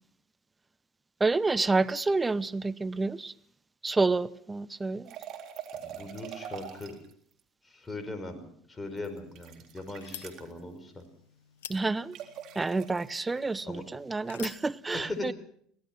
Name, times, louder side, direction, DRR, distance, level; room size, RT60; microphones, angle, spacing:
voice 1, 1.2-3.3 3.8-5.2 11.7-12.2 12.5-15.3, right 3 dB, 20° right, 0.9 m, -28 dB
sound 1, 5.1-7.1 9.0-10.5 12.1-13.2, right 9 dB, 60° right, 3.8 m, -43 dB
voice 2, 5.8-7.0 7.6-8.4 8.7-11.0 13.6-13.8 14.9-15.3, left 2 dB, 20° left, 5.2 m, -39 dB
sound 2, 8.8-14.7, left 10 dB, 90° left, 1.1 m, -50 dB
25.0 x 17.5 x 6.2 m
hypercardioid pair, 75°, 0 cm